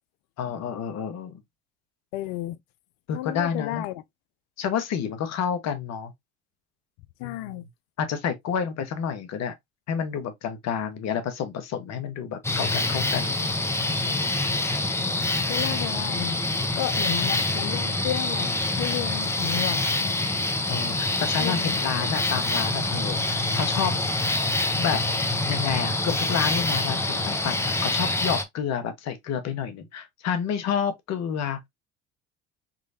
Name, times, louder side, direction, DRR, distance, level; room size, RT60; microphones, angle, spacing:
voice 1, 0.4-1.4 3.1-3.8 4.6-6.1 7.2-7.6 8.0-9.5 9.9-13.5 15.4-15.8 20.6-23.9 24.2-24.4 24.8-25.0 25.4-31.6, left 7 dB, 55° left, 1.2 m, -29 dB
voice 2, 2.1-2.6 3.1-4.0 7.2-7.6 15.5-16.4 16.8-20.1 21.4-21.8, left 15 dB, 70° left, 0.6 m, -32 dB
sound 1, 12.4-28.4, left 2 dB, 10° left, 0.8 m, -26 dB
3.7 x 3.2 x 2.8 m
hypercardioid pair, 70°, 32 cm